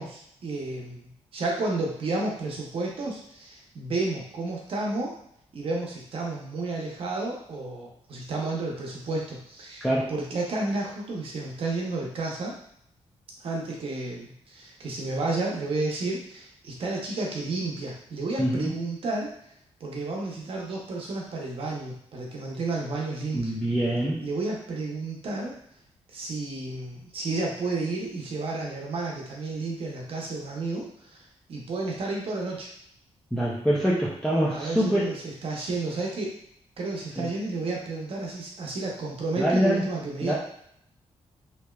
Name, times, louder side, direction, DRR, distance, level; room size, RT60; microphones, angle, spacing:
voice 1, 0.0-5.2 5.5-12.6 13.4-19.3 19.8-23.5 24.2-25.6 26.1-31.2 31.5-32.7 34.5-35.1 35.4-36.3 36.8-40.3, right 3 dB, 55° right, -2 dB, 0.7 m, -31 dB
voice 2, 9.8-10.1 18.4-18.7 23.3-24.2 33.3-35.1 37.2-37.3 39.4-39.9 40.2-40.3, equal, 5° left, -7 dB, 0.5 m, -25 dB
3.1 x 2.8 x 2.3 m, 0.70 s
wide cardioid pair, 165°, 11 cm